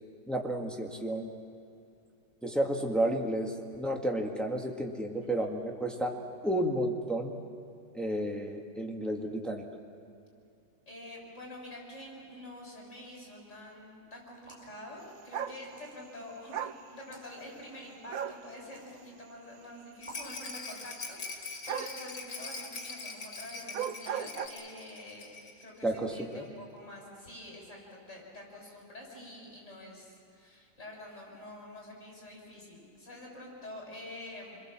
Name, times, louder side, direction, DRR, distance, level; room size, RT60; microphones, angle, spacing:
voice 1, 0.3-1.3 2.4-6.2 6.4-7.4 7.9-9.6 25.8-26.5, right 1 dB, ahead, 1 dB, 1.8 m, -32 dB
voice 2, 5.2-5.5 10.9-25.3 25.6-34.6, left 1 dB, 40° left, -2 dB, 7.4 m, -47 dB
sound 1, 14.3-14.8 15.6-16.2 17.0-17.3 18.5-19.0 20.0-20.4, right 2 dB, 15° right, 5.7 m, -52 dB
sound 2, 15.3-15.6 16.5-16.8 18.1-18.4 21.7-22.0 23.6-24.5, right 9 dB, 60° right, 1.1 m, -35 dB
Rattle, 20.0-25.7 26.0-26.1 26.3-26.4, left 3 dB, 70° left, 2.9 m, -43 dB
28.5 x 22.0 x 7.5 m, 2.5 s
omnidirectional pair, 2.0 m